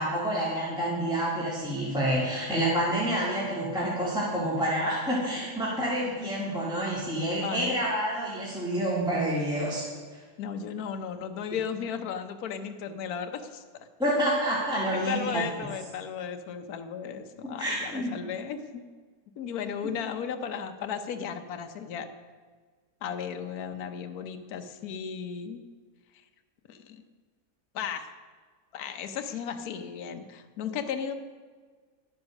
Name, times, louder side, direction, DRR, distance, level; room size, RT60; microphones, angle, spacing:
voice 1, 0.0-9.9 14.0-15.4 17.6-18.1, right 1 dB, 5° right, -7 dB, 2.4 m, -28 dB
voice 2, 7.4-7.8 10.4-13.9 14.9-18.8 19.4-22.1 23.0-25.6 26.7-27.0 27.7-28.1 28.7-31.1, left 7 dB, 70° left, 7 dB, 1.3 m, -35 dB
11.5 x 9.6 x 6.3 m, 1.5 s
omnidirectional pair, 1.7 m